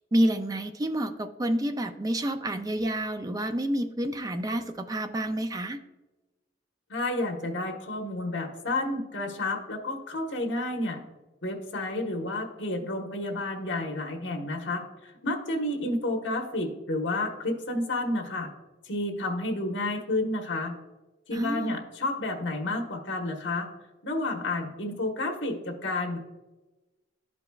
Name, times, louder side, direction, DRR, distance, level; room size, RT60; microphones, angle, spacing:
voice 1, 0.1-5.8 21.3-21.8, right 1 dB, 20° right, 8 dB, 0.4 m, -28 dB
voice 2, 6.9-11.0 11.4-18.5 18.8-20.7 21.3-23.7 24.0-26.2, left 2 dB, 70° left, 2 dB, 1.3 m, -30 dB
12.5 x 5.0 x 2.4 m, 1.1 s
head